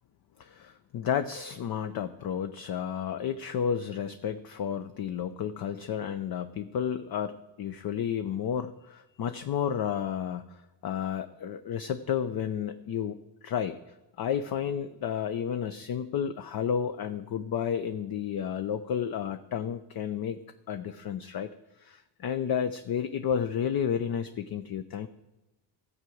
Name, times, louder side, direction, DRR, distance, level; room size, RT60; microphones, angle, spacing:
voice 1, 0.4-13.8 14.2-20.4 20.7-21.5 21.8-25.1, left 8 dB, 45° left, 9 dB, 0.6 m, -32 dB
13.5 x 4.9 x 7.8 m, 1.0 s
cardioid pair, 95°, 50 cm